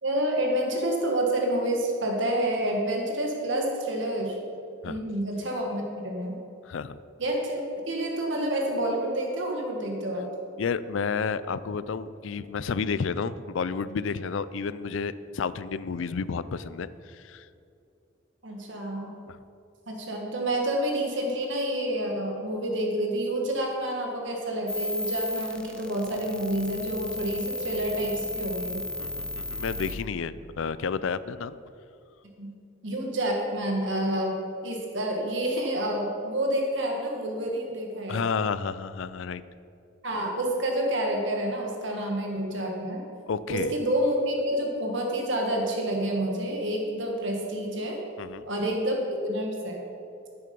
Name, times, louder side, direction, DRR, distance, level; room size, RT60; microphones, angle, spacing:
voice 1, 0.0-4.4 4.8-6.4 7.2-10.3 18.4-19.1 19.9-28.8 32.4-32.5 32.8-38.2 40.0-43.0 43.5-48.0 48.5-49.8, right 1 dB, 65° right, 1 dB, 1.6 m, -28 dB
voice 2, 6.6-7.0 10.6-17.5 19.3-19.4 29.0-31.6 38.1-39.4 43.3-43.7 48.2-48.4, left 5 dB, 75° left, 16 dB, 0.4 m, -31 dB
sound 1, 24.7-29.9, left 1 dB, 5° left, 0.5 m, -34 dB
10.5 x 9.6 x 5.2 m, 2.6 s
head